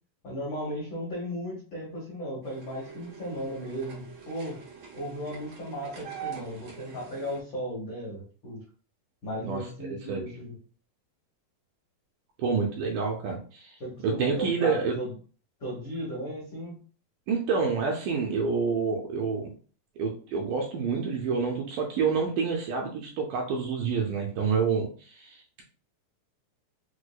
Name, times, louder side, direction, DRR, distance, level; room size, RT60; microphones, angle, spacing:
voice 1, 0.2-4.6 4.9-8.6 9.2-10.6 13.8-15.1 15.6-16.8, equal, 80° left, -6 dB, 1.1 m, -36 dB
sound 1, 2.4-7.4, right 7 dB, 65° right, 1.8 m, -44 dB
voice 2, 9.4-10.3 12.4-13.8 14.0-14.9 17.3-19.5 20.0-25.6, right 5 dB, 80° right, 0 dB, 1.9 m, -28 dB
6.1 x 2.1 x 2.2 m, 0.40 s
omnidirectional pair, 4.1 m